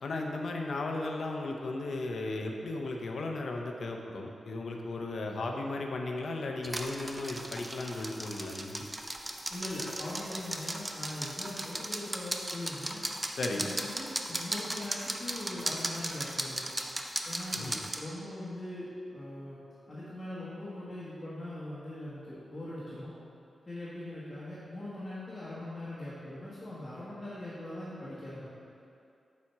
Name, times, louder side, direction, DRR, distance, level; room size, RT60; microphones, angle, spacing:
voice 1, 0.0-8.8 13.4-13.7 17.5-17.8, left 2 dB, 65° left, 2 dB, 0.6 m, -35 dB
sound 1, 6.6-18.0, right 1 dB, 15° right, 0.4 m, -37 dB
voice 2, 9.5-13.3 13.5-16.6 17.2-19.6 19.9-23.1 23.7-28.5, left 1 dB, 20° left, -10 dB, 1.3 m, -41 dB
7.3 x 4.2 x 4.7 m, 2.6 s
wide cardioid pair, 150°, 0 cm